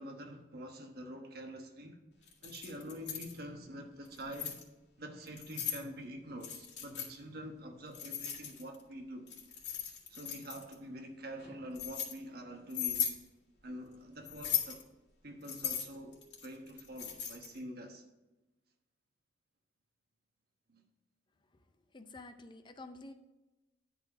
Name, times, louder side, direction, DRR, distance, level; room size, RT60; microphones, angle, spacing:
voice 1, 0.0-2.0 2.4-4.6 5.0-9.3 10.1-13.1 13.6-14.8 15.2-18.0 20.7-20.8, equal, 60° right, 1.2 m, -46 dB
Keys jangling, 2.3-3.3 4.1-4.6 5.3-5.8 6.4-7.1 7.9-8.8 9.3-10.7 11.4-12.1 12.7-13.2 14.3-14.8 15.4-17.6, left 9 dB, 85° left, 1.9 m, -38 dB
voice 2, 21.9-23.1, left 2 dB, 25° left, 0.5 m, -49 dB
10.5 x 4.2 x 4.9 m
head